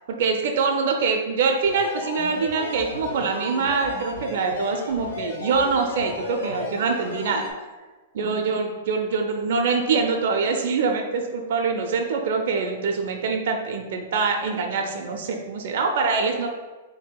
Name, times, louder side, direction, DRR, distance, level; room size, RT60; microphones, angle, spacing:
voice 1, 0.1-7.5 8.1-16.5, right 4 dB, 55° right, 3 dB, 0.4 m, -24 dB
sound 1, 1.6-7.5, left 2 dB, 80° left, 0.8 m, -34 dB
7.1 x 2.6 x 2.3 m, 1.3 s
hypercardioid pair, 165°, 0 cm